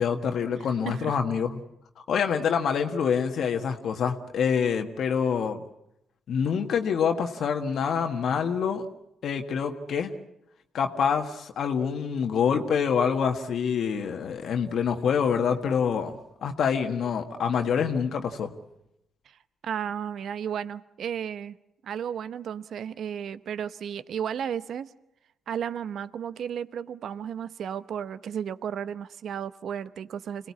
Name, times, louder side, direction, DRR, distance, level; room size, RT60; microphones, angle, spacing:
voice 1, 0.0-1.6 2.0-5.6 6.3-8.8 9.2-10.1 10.7-18.5, left 7 dB, 65° left, 1.6 m, -26 dB
voice 2, 0.6-1.2 19.3-19.4 19.6-21.6 21.8-24.9 25.5-30.5, right 8 dB, 65° right, 0.8 m, -34 dB
26.0 x 18.0 x 8.5 m
supercardioid pair, 70°, 0 cm